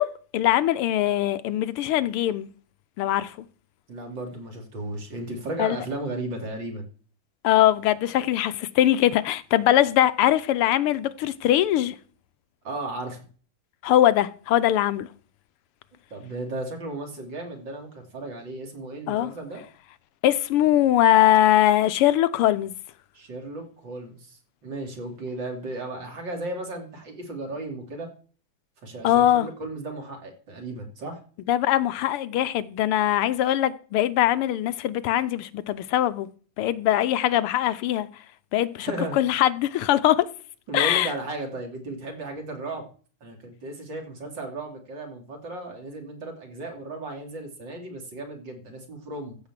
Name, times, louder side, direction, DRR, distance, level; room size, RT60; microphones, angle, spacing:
voice 1, 0.0-2.5 3.0-3.3 5.6-5.8 7.4-12.0 13.8-15.1 19.1-19.3 20.2-22.7 29.0-29.5 31.5-36.3 36.6-38.1 38.5-38.9 39.2-40.3 40.7-41.1, left 12 dB, 85° left, 1.7 m, -21 dB
voice 2, 3.9-6.9 12.6-13.2 16.1-19.6 23.1-28.1 28.8-31.2 38.8-39.2 40.7-42.9 43.2-49.4, right 2 dB, 55° right, 3.5 m, -35 dB
14.5 x 5.1 x 7.5 m
omnidirectional pair, 2.4 m